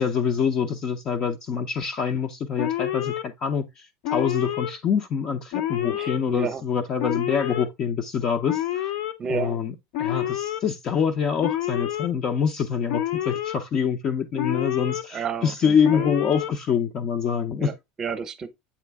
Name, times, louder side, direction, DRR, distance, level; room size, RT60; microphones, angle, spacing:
voice 1, 0.0-8.9 9.3-17.7, left 7 dB, 35° left, 0.6 m, -25 dB
Alarm, 2.6-3.2 4.0-4.7 5.5-6.2 7.0-7.7 8.5-9.1 9.9-10.6 11.4-12.1 12.9-13.6 14.4-15.0 15.8-16.5, left 12 dB, 65° left, 0.9 m, -28 dB
voice 2, 5.9-6.6 9.2-9.6 15.1-16.1 17.6-18.5, right 6 dB, 25° right, 0.8 m, -31 dB
8.4 x 3.2 x 3.4 m
supercardioid pair, 140°, 2 cm